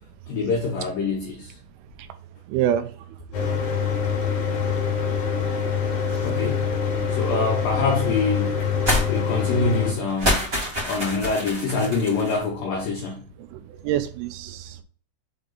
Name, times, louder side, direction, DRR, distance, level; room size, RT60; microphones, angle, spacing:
voice 1, 0.3-1.5 6.2-6.7 7.2-8.6 9.1-10.5 10.8-13.2, left 3 dB, 80° left, -1 dB, 2.0 m, -25 dB
voice 2, 2.5-3.4 4.4-4.6 5.9-6.2 7.1-7.5 9.2-9.3 13.4-14.8, right 10 dB, 90° right, 9 dB, 3.2 m, -28 dB
Mechanical fan, 3.3-9.9, left 7 dB, 60° left, 2.1 m, -25 dB
sound 1, 8.9-9.1 9.4-9.5 10.1-12.4, left 1 dB, 30° right, 1.5 m, -26 dB
7.2 x 3.5 x 3.9 m, 0.41 s
omnidirectional pair, 5.5 m